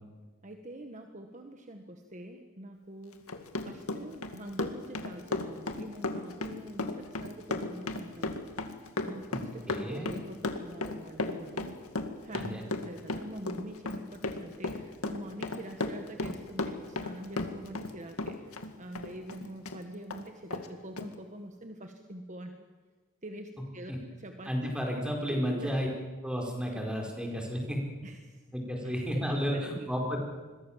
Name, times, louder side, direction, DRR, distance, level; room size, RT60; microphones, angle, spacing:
voice 1, 0.4-3.2 3.6-8.4 9.0-11.8 12.2-22.5 23.2-24.7 25.3-25.7 28.0-28.4 28.8-29.9, right 1 dB, 35° right, 5 dB, 1.6 m, -45 dB
Run, 3.1-17.9 18.2-19.8 20.1-20.2 20.5-20.7 21.0-21.1, left 2 dB, 85° left, 2.2 m, -35 dB
voice 2, 9.3-10.1 12.3-12.6 23.9-24.0 24.4-25.9 26.2-27.8 28.5-30.2, equal, 5° right, 0 dB, 4.9 m, -32 dB
27.0 x 22.5 x 7.5 m, 1.4 s
head